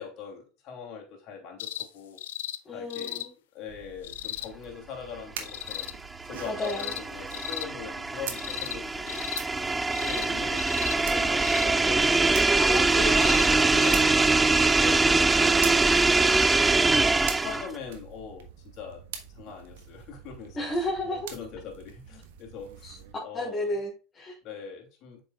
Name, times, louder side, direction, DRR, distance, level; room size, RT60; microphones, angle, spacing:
voice 1, 0.0-2.2 2.7-3.2 3.5-5.9 6.3-9.2 10.0-10.6 10.9-12.4 13.4-18.5 18.7-19.0 19.3-23.7 24.4-25.2, left 6 dB, 55° left, 2.9 m, -42 dB
sound 1, 1.6-1.9 2.2-2.6 2.9-3.3 4.0-4.5 5.4-5.9 6.6-7.0 7.3-7.7 8.3-8.8 9.1-9.4 9.9-10.3 10.6-11.0 11.4-11.7 13.0-13.5 13.8-13.9 15.0-15.1, left 13 dB, 80° left, 0.5 m, -36 dB
voice 2, 2.6-3.3 6.4-6.9 12.5-14.1 20.5-21.3 22.8-22.9 23.3-24.4, left 1 dB, 25° left, 3.4 m, -32 dB
sound 2, 3.7-23.1, right 8 dB, 80° right, 1.3 m, -44 dB
sound 3, 5.9-17.8, right 3 dB, 15° right, 0.4 m, -23 dB
7.7 x 6.0 x 2.4 m
hypercardioid pair, 90°, 0 cm